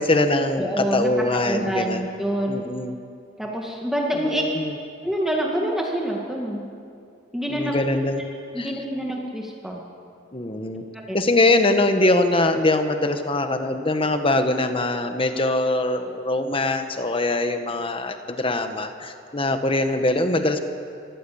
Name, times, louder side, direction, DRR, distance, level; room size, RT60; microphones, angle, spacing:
voice 1, 0.0-2.1 2.5-3.0 4.1-4.8 7.5-8.2 8.6-8.7 10.3-10.8 11.1-20.6, left 2 dB, 30° left, 7 dB, 1.4 m, -22 dB
voice 2, 0.6-2.6 3.4-4.4 5.0-6.6 7.3-7.7 8.5-9.8 10.9-11.2, right 1 dB, ahead, -1 dB, 2.0 m, -26 dB
23.0 x 15.5 x 8.7 m, 2.4 s
head